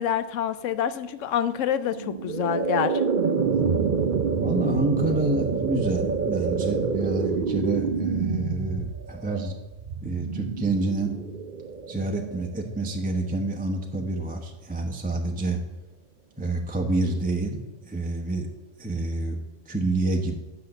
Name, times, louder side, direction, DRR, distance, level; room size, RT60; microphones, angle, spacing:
voice 1, 0.0-3.0, left 9 dB, 80° left, 13 dB, 0.9 m, -27 dB
sound 1, 1.9-13.1, right 5 dB, 50° right, 0.7 m, -27 dB
voice 2, 4.3-9.6 10.0-11.1 11.9-15.6 16.4-18.5 18.8-19.4 19.7-20.4, right 2 dB, 10° right, 2 dB, 0.8 m, -28 dB
8.5 x 5.8 x 6.7 m, 1.0 s
omnidirectional pair, 1.3 m